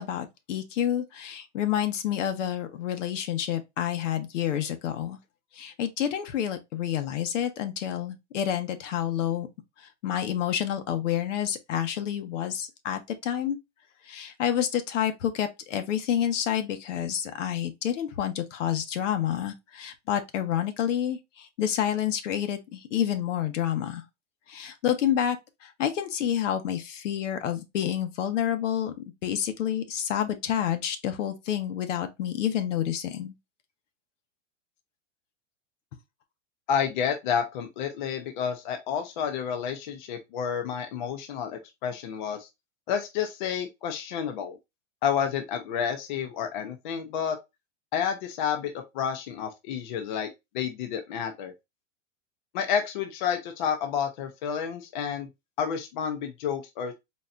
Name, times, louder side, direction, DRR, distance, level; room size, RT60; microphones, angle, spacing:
voice 1, 0.0-5.2 5.5-9.5 9.8-13.6 14.1-24.0 24.5-25.4 25.6-33.3, left 10 dB, 75° left, 1.1 m, -29 dB
voice 2, 36.7-42.5 42.9-44.6 45.0-47.4 47.9-51.5 52.5-55.3 55.6-56.9, left 7 dB, 40° left, 0.7 m, -30 dB
4.2 x 3.1 x 2.5 m
supercardioid pair, 175°, 37 cm